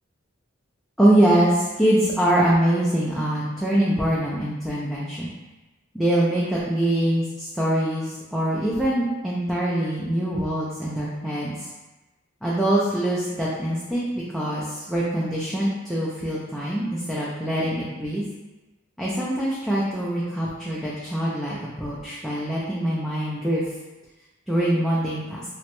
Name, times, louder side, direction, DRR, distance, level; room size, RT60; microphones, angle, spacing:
voice 1, 1.0-5.3 5.9-11.7 12.4-14.1 14.3-18.2 19.0-23.6 24.5-25.4, right 1 dB, ahead, -8 dB, 0.3 m, -23 dB
2.9 x 2.1 x 2.9 m, 1.1 s
head